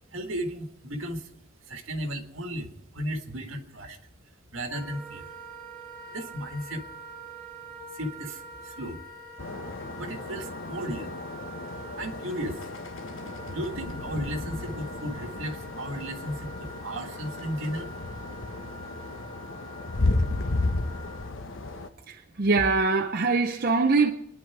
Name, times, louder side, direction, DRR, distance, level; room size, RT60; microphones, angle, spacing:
voice 1, 0.1-1.3 1.7-4.0 4.5-5.3 6.1-6.9 7.9-9.0 10.0-11.2 12.0-12.7 13.5-17.9, equal, 75° right, 1.7 m, -35 dB
Wind instrument woodwind instrument, 4.7-21.3, right 2 dB, 10° left, 5.1 m, -45 dB
sound 1, 9.4-21.9, left 2 dB, 75° left, 1.1 m, -33 dB
voice 2, 22.1-24.1, right 3 dB, 45° right, 0.7 m, -23 dB
26.0 x 10.5 x 4.7 m
head